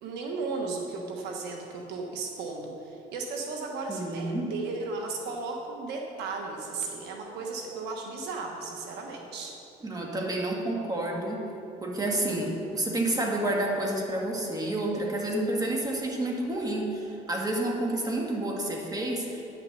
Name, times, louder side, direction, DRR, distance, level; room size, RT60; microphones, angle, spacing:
voice 1, 0.0-9.5, right 3 dB, 85° right, 1 dB, 1.3 m, -35 dB
voice 2, 3.9-4.5 9.8-11.5 11.8-19.4, right 1 dB, 20° right, -1 dB, 1.9 m, -29 dB
9.9 x 6.7 x 6.8 m, 2.9 s
cardioid pair, 110°, 17 cm